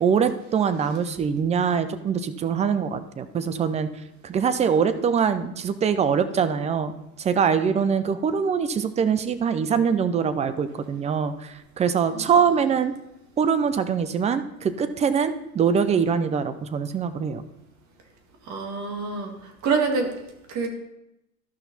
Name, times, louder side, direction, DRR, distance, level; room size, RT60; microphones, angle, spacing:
voice 1, 0.0-3.9 4.2-6.9 7.2-12.9 13.4-17.4, right 6 dB, 15° right, 12 dB, 0.5 m, -23 dB
voice 2, 18.5-20.2 20.5-20.7, right 4 dB, 40° right, 3 dB, 2.1 m, -26 dB
13.0 x 5.7 x 4.1 m, 0.85 s
hypercardioid pair, 105°, 44 cm